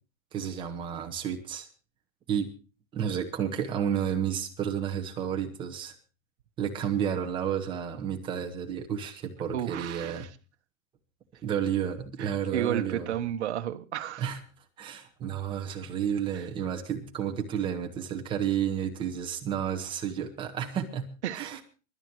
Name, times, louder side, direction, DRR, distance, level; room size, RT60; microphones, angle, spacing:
voice 1, 0.3-1.7 2.3-2.5 2.9-5.9 6.6-10.3 11.4-13.1 14.2-14.4 14.8-21.6, right 8 dB, 10° right, 1.5 m, -31 dB
voice 2, 9.5-10.3 12.2-14.3 16.3-16.5 21.2-21.6, right 11 dB, 55° right, 1.4 m, -33 dB
24.5 x 12.5 x 3.2 m
hypercardioid pair, 170°, 40 cm